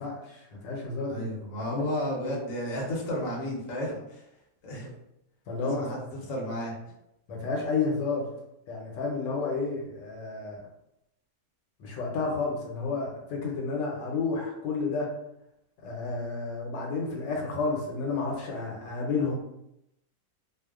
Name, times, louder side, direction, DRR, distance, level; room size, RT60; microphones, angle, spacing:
voice 1, 0.0-1.3 1.6-1.9 5.5-5.9 7.3-8.3 8.7-10.6 11.8-15.1 15.8-19.4, left 4 dB, 80° left, -1 dB, 1.3 m, -31 dB
voice 2, 1.1-4.2 4.6-4.9 5.6-6.7, equal, 60° left, -2 dB, 0.9 m, -32 dB
3.0 x 2.0 x 2.3 m, 0.83 s
omnidirectional pair, 2.0 m